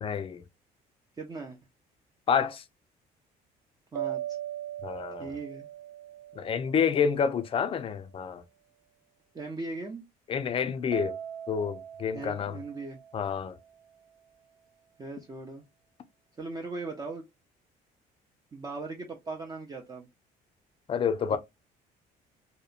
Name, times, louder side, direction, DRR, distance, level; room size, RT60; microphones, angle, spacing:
voice 1, 0.0-0.4 2.3-2.6 4.8-5.4 6.4-8.4 10.3-11.2 11.5-12.6 13.1-13.6 20.9-21.4, left 7 dB, 35° left, 0.4 m, -28 dB
voice 2, 1.2-1.6 3.9-4.2 5.2-5.7 9.3-10.0 12.1-13.0 15.0-15.6 16.4-17.3 18.5-20.1 21.3-21.4, right 3 dB, 20° right, 0.5 m, -38 dB
sound 1, 3.9-7.5 10.9-13.9, right 11 dB, 65° right, 0.6 m, -40 dB
2.8 x 2.1 x 2.4 m
cardioid pair, 110°, 17 cm